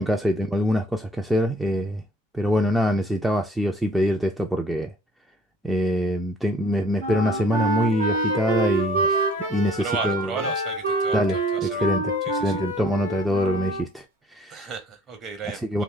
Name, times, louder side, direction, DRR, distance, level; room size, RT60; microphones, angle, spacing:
voice 1, 0.0-2.0 2.3-4.9 5.6-9.2 9.5-10.4 11.1-14.0 14.3-14.7 15.7-15.8, equal, 5° right, 0.3 m, -24 dB
Wind instrument woodwind instrument, 6.6-13.8, right 5 dB, 65° right, 0.9 m, -27 dB
Wind instrument woodwind instrument 2, 7.1-13.9, left 6 dB, 60° left, 0.5 m, -32 dB
voice 2, 9.8-11.9 12.2-12.6 14.5-15.8, right 5 dB, 30° right, 0.7 m, -35 dB
2.6 x 2.0 x 3.6 m
figure-of-eight pair, 90°, 0 cm